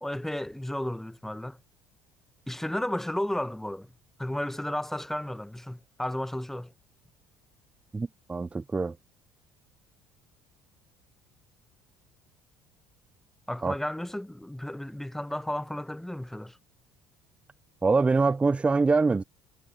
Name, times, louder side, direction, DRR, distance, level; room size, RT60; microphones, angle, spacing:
voice 1, 0.0-1.6 2.5-3.9 4.2-6.7 13.5-16.6, left 1 dB, 5° left, 1.0 m, -33 dB
voice 2, 7.9-8.9 13.6-13.7 17.8-19.2, right 4 dB, 15° right, 0.3 m, -24 dB
hypercardioid pair, 60°, 8 cm